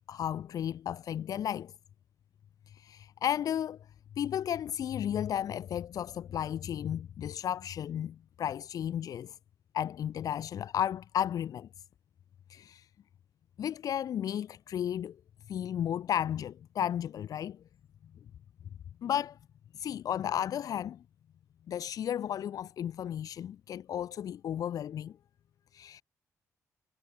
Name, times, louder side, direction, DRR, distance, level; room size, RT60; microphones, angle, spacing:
voice 1, 0.1-1.7 2.7-3.8 4.2-9.4 9.7-11.7 12.5-12.9 13.6-15.2 15.5-17.6 19.0-19.4 19.7-21.0 21.7-25.2 25.7-26.0, left 10 dB, 75° left, 2.5 m, -33 dB
cardioid pair, 100°, 6 cm